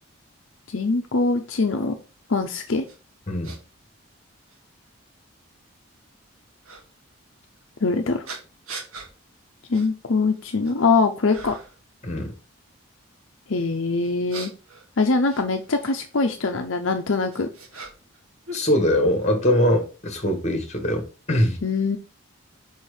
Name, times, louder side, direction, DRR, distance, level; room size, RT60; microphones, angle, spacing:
voice 1, 0.7-2.0 2.3-2.8 7.8-8.3 9.7-11.5 13.5-14.5 15.0-17.5 21.6-22.0, left 3 dB, 65° left, 0.7 m, -23 dB
sound 1, 2.9-3.0 3.4-3.6 4.5-4.6 6.6-6.8 8.2-9.1 9.7-9.9 10.3-10.8 11.3-11.8 14.0-16.0 16.9-18.2 18.4-19.3, right 3 dB, 80° right, 1.6 m, -40 dB
voice 2, 18.5-21.6, left 1 dB, 30° left, 1.6 m, -22 dB
5.6 x 4.5 x 4.9 m
head